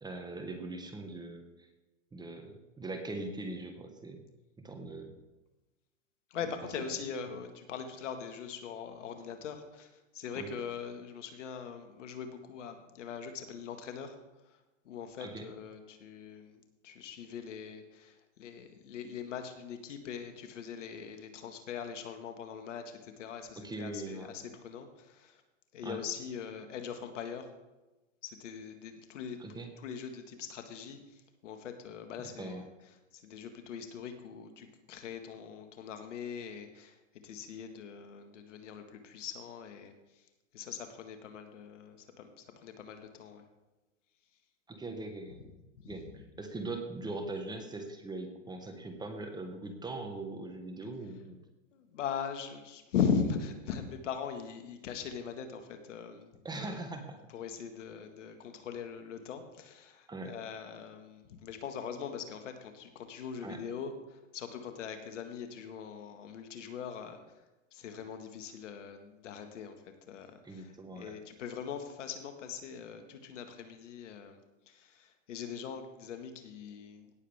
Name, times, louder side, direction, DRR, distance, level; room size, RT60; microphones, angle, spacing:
voice 1, 0.0-1.7 2.1-4.2 4.6-5.1 10.3-10.5 15.2-15.5 23.6-24.3 25.8-26.0 29.4-29.7 32.4-32.6 44.7-45.4 45.8-46.0 46.4-51.4 56.4-57.2 60.1-60.3 63.4-63.6 70.4-71.1, right 2 dB, 10° right, 5 dB, 1.5 m, -41 dB
voice 2, 6.3-14.2 14.4-25.4 25.7-27.5 28.2-32.7 33.1-43.5 45.3-45.4 45.8-46.0 51.7-56.8 57.3-67.4 67.7-77.1, left 7 dB, 70° left, 7 dB, 1.8 m, -41 dB
17.5 x 7.4 x 3.6 m, 1.1 s
hypercardioid pair, 115°, 37 cm